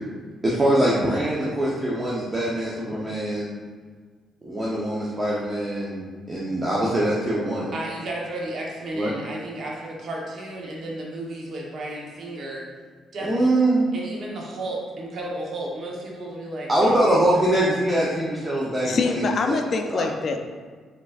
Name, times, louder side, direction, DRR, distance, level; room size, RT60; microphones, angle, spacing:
voice 1, 0.4-3.6 4.4-7.7 9.0-9.1 13.2-13.9 16.7-19.6 19.9-20.0, right 1 dB, 25° right, -6 dB, 0.7 m, -23 dB
voice 2, 7.7-12.6 13.1-13.5 13.9-17.0, right 1 dB, 60° right, -2 dB, 1.0 m, -33 dB
voice 3, 18.8-20.4, left 4 dB, 50° left, 5 dB, 0.4 m, -24 dB
4.7 x 3.9 x 2.4 m, 1.5 s
cardioid pair, 90°, 0 cm